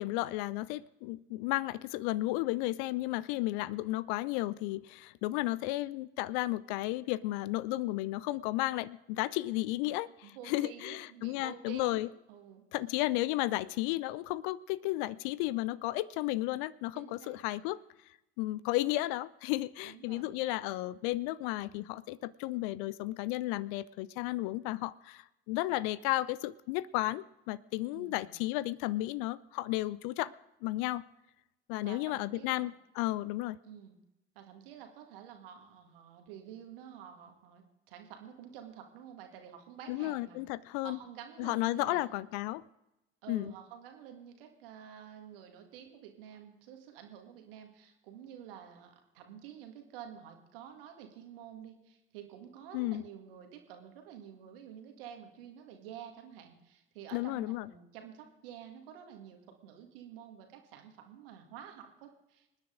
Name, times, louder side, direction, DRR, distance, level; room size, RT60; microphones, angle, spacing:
voice 1, 0.0-12.1 12.7-17.8 18.4-30.3 30.6-31.0 31.7-33.6 39.9-41.0 41.4-42.6 43.3-43.5 52.7-53.0 57.1-57.7, left 17 dB, 60° left, 20 dB, 0.5 m, -33 dB
voice 2, 10.2-12.6 16.9-17.4 19.8-20.3 27.9-28.4 31.8-32.7 33.6-34.0 34.4-40.4 40.8-42.1 43.2-62.6, right 9 dB, 70° right, 4 dB, 2.0 m, -50 dB
26.0 x 9.9 x 3.8 m, 0.93 s
figure-of-eight pair, 50°, 30 cm